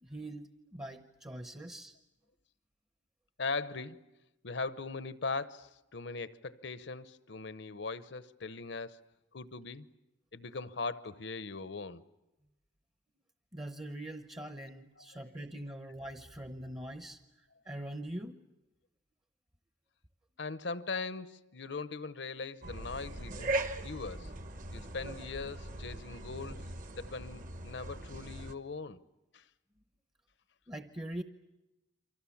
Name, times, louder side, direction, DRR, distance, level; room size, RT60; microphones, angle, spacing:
voice 1, 0.0-1.9 13.5-17.2 17.7-18.4 30.7-31.2, right 1 dB, 20° right, 0.8 m, -43 dB
voice 2, 3.4-4.0 4.4-9.0 9.3-9.9 10.3-12.0 15.0-15.2 20.4-23.6 23.8-24.3 24.7-26.7 27.0-29.0 29.3-29.4, left 4 dB, 65° left, 0.9 m, -40 dB
sound 1, 22.6-28.5, right 2 dB, 40° right, 1.1 m, -40 dB
29.0 x 24.5 x 7.2 m
head